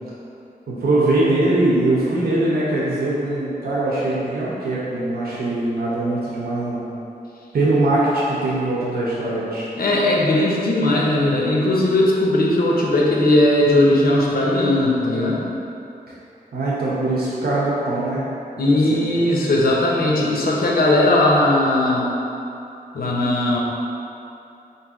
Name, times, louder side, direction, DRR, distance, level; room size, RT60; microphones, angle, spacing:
voice 1, 0.7-6.8 7.5-9.7 16.5-18.2 18.6-19.2, right 2 dB, 85° right, -8 dB, 0.8 m, -21 dB
voice 2, 9.8-15.4 18.6-22.1 22.9-23.6, left 1 dB, 75° left, -3 dB, 0.7 m, -18 dB
4.7 x 2.6 x 3.6 m, 2.8 s
wide cardioid pair, 115°, 16 cm